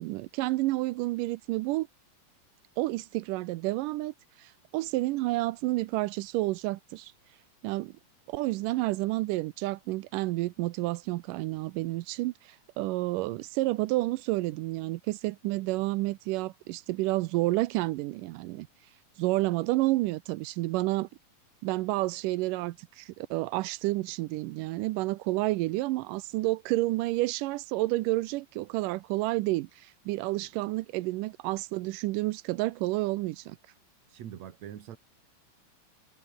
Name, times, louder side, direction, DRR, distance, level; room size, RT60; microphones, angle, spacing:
voice 1, 0.0-1.9 2.8-4.1 4.4-7.1 7.6-7.9 8.3-12.3 12.8-18.7 19.2-21.1 21.6-29.7 30.1-33.6, right 19 dB, 90° right, 2.3 m, -30 dB
voice 2, 34.1-35.0, right 10 dB, 60° right, 2.8 m, -43 dB
omnidirectional pair, 3.7 m